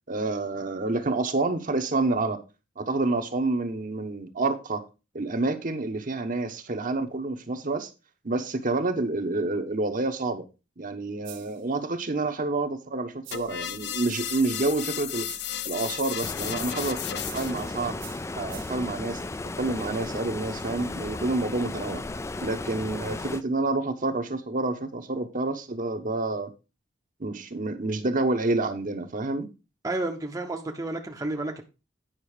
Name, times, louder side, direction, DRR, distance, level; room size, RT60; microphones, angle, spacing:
voice 1, 0.1-2.4 2.8-4.8 5.1-7.9 8.2-10.4 10.8-15.3 15.6-18.0 18.4-19.2 19.6-22.0 22.4-26.5 27.2-29.5, right 2 dB, 45° right, 1.0 m, -28 dB
sound 1, 11.2-11.7 13.2-13.7 14.2-14.7 15.2-15.7 17.2-17.7 18.0-18.9, right 11 dB, 90° right, 1.6 m, -47 dB
sound 2, 13.3-17.7, left 11 dB, 65° left, 0.6 m, -34 dB
Stream, 16.2-23.4, left 2 dB, 15° left, 0.3 m, -35 dB
voice 2, 29.8-31.6, right 2 dB, 20° right, 0.8 m, -31 dB
9.0 x 5.4 x 4.8 m
head